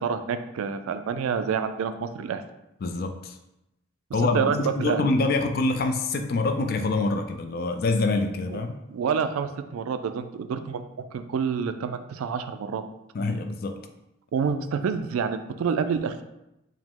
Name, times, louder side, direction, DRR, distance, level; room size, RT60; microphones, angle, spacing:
voice 1, 0.0-2.4 4.2-5.1 8.5-8.6 8.9-10.8 11.1-12.8 14.3-16.2, right 6 dB, 85° right, 10 dB, 0.3 m, -28 dB
voice 2, 2.8-3.3 4.1-8.8 13.1-13.8, left 3 dB, 45° left, 7 dB, 0.3 m, -25 dB
4.9 x 2.0 x 3.6 m, 0.89 s
head